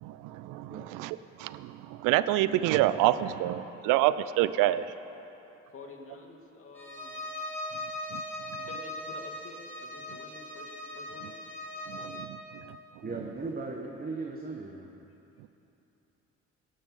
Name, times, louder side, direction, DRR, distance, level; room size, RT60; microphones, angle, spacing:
voice 1, 0.0-4.8 8.1-8.2 11.9-12.4, right 14 dB, 75° right, 15 dB, 0.5 m, -27 dB
voice 2, 5.7-7.2 8.5-11.4, left 3 dB, 45° left, 0 dB, 2.3 m, -49 dB
Bowed string instrument, 6.7-12.4, left 1 dB, 5° left, 3.0 m, -39 dB
voice 3, 13.0-14.9, right 3 dB, 30° right, 1 dB, 1.2 m, -37 dB
18.0 x 7.0 x 5.5 m, 3.0 s
supercardioid pair, 60°, 32 cm